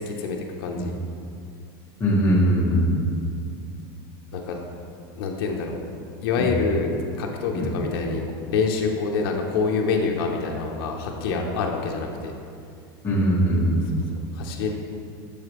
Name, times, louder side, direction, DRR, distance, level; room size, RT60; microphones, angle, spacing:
voice 1, 0.1-1.0 4.3-4.6 5.2-5.8 6.2-12.3 14.3-14.7, left 4 dB, 70° left, 1 dB, 0.7 m, -26 dB
voice 2, 2.0-3.0 6.4-6.5 7.5-7.7 13.0-14.0, equal, 20° left, -5 dB, 1.2 m, -20 dB
6.9 x 4.8 x 3.0 m, 2.4 s
supercardioid pair, 150°, 12 cm